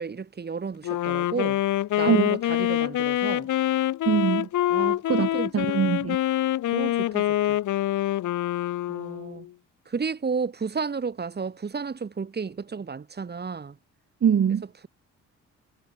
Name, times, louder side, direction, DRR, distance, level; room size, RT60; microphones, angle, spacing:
voice 1, 0.0-1.6 2.0-3.5 4.7-5.5 6.7-7.6 8.9-9.5 9.9-13.8, right 5 dB, 35° right, 2.9 m, -32 dB
Wind instrument woodwind instrument, 0.8-9.5, left 13 dB, 80° left, 2.6 m, -25 dB
voice 2, 4.1-4.5 5.1-6.2 14.2-14.6, right 8 dB, 50° right, 4.0 m, -23 dB
cardioid pair, 90°, 30 cm